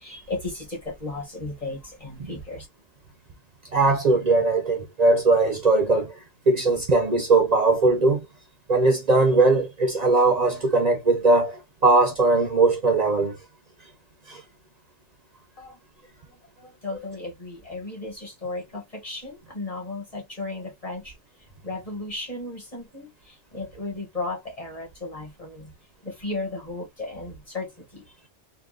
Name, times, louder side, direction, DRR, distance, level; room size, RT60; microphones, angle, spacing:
voice 1, 0.0-2.7 15.6-15.8 16.6-21.1 21.6-23.1 23.5-25.7 26.0-28.0, left 2 dB, 30° left, 1.5 m, -35 dB
voice 2, 3.7-6.2 6.5-8.3 8.7-13.4 14.3-14.4 16.9-17.0, right 3 dB, 45° right, 0.7 m, -20 dB
3.6 x 2.4 x 2.4 m
omnidirectional pair, 1.2 m